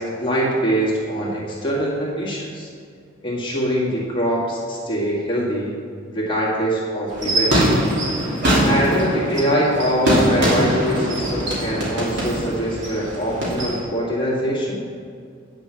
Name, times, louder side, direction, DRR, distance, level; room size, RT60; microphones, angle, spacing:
voice 1, 0.0-2.7 3.2-5.7 6.1-7.6 8.6-14.8, equal, 25° left, -5 dB, 1.9 m, -23 dB
sound 1, 7.1-13.8, equal, 60° right, 2.8 m, -22 dB
9.3 x 6.6 x 6.3 m, 2.2 s
head